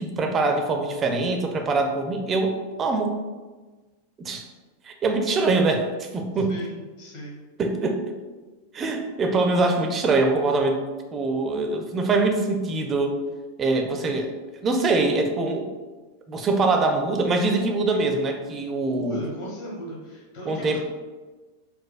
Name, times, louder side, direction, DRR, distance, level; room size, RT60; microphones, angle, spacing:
voice 1, 0.0-3.1 4.2-4.5 4.8-6.6 7.6-8.1 8.7-10.8 11.1-13.2 13.6-14.3 14.6-15.7 16.3-19.2 20.5-20.8, right 3 dB, 25° right, 4 dB, 0.4 m, -23 dB
voice 2, 6.3-7.4 18.8-20.8, equal, 50° left, -3 dB, 1.1 m, -36 dB
4.2 x 2.1 x 2.3 m, 1.3 s
figure-of-eight pair, 90°, 0 cm